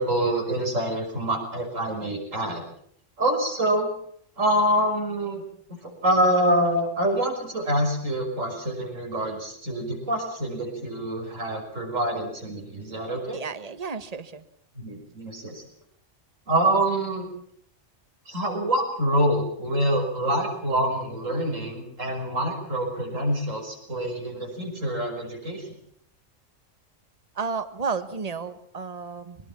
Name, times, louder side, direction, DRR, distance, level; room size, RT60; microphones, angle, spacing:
voice 1, 0.0-2.6 3.2-3.9 4.4-5.4 5.7-13.4 14.8-15.6 16.5-17.3 18.3-25.7, right 1 dB, 75° right, 2 dB, 6.2 m, -26 dB
voice 2, 13.3-14.4 27.3-29.4, right 5 dB, 30° right, 11 dB, 1.4 m, -32 dB
23.5 x 20.0 x 7.3 m, 0.65 s
omnidirectional pair, 1.3 m